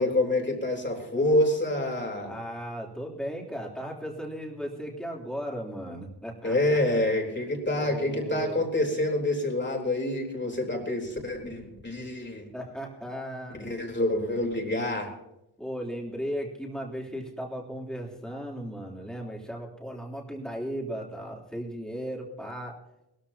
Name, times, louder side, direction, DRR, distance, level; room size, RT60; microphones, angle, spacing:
voice 1, 0.0-2.3 6.4-12.5 13.6-15.1, left 1 dB, 25° left, 1 dB, 4.0 m, -27 dB
voice 2, 2.2-7.0 7.7-8.6 12.0-12.1 12.5-13.6 15.6-22.8, equal, ahead, -2 dB, 3.5 m, -36 dB
21.5 x 14.0 x 2.9 m, 0.88 s
wide cardioid pair, 120°, 40 cm